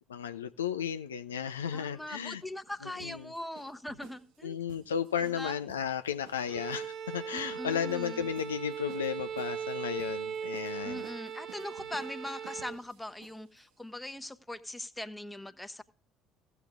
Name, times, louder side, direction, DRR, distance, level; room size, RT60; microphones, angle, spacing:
voice 1, 0.1-2.4 2.8-3.3 4.4-11.0, left 8 dB, 80° left, 0.4 m, -34 dB
sound 1, 1.6-13.7, right 7 dB, 65° right, 1.7 m, -55 dB
voice 2, 1.7-4.6 5.2-5.6 7.3-8.3 10.8-15.8, left 1 dB, 10° left, 1.0 m, -41 dB
Bowed string instrument, 6.5-12.8, right 7 dB, 45° right, 0.7 m, -39 dB
15.5 x 8.0 x 3.5 m
figure-of-eight pair, 55°, 0 cm